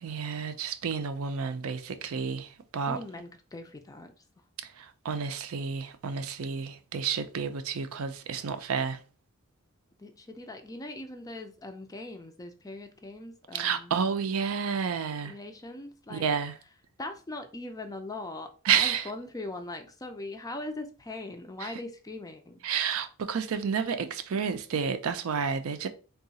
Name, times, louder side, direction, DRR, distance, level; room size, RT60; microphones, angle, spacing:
voice 1, 0.0-3.0 4.6-9.0 13.5-15.3 16.1-16.5 18.7-19.1 21.6-21.7 22.6-25.9, right 6 dB, 65° right, 0.4 m, -30 dB
voice 2, 2.9-4.1 10.0-13.9 15.2-16.3 17.0-22.6, left 2 dB, 15° left, 0.4 m, -40 dB
3.7 x 2.3 x 4.0 m
head